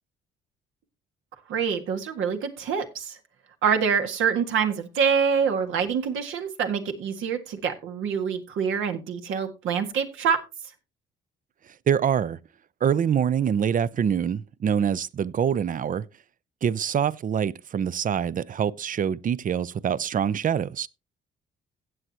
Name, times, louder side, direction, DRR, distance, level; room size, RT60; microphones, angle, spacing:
voice 1, 1.5-3.2 3.6-10.4, right 6 dB, 85° right, 1.8 m, -26 dB
voice 2, 11.9-12.4 12.8-16.1 16.6-20.9, right 8 dB, 40° right, 0.5 m, -25 dB
15.5 x 8.0 x 2.9 m
cardioid pair, 90°, 20 cm